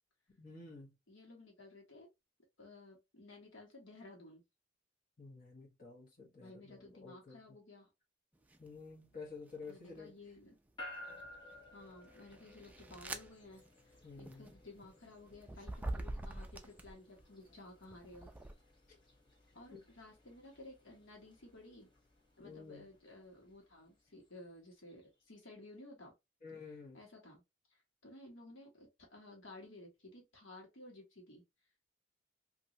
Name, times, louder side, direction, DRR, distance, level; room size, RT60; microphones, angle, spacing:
voice 1, 0.4-0.9 5.2-7.4 8.6-10.2 14.0-14.4 18.9-19.0 19.7-19.8 22.4-22.9 26.4-27.0, left 4 dB, 45° left, 1.2 m, -51 dB
voice 2, 1.1-2.1 2.6-4.4 6.4-7.9 9.7-10.6 11.7-18.3 19.5-21.9 22.4-26.1 26.9-27.4 27.7-31.4, left 2 dB, 75° left, 1.3 m, -55 dB
sound 1, 8.5-8.8 9.4-10.2 10.8-17.2 17.8-18.5, right 2 dB, 10° right, 0.3 m, -46 dB
sound 2, 10.8-25.1, left 1 dB, 25° left, 1.0 m, -57 dB
3.0 x 2.6 x 2.6 m
head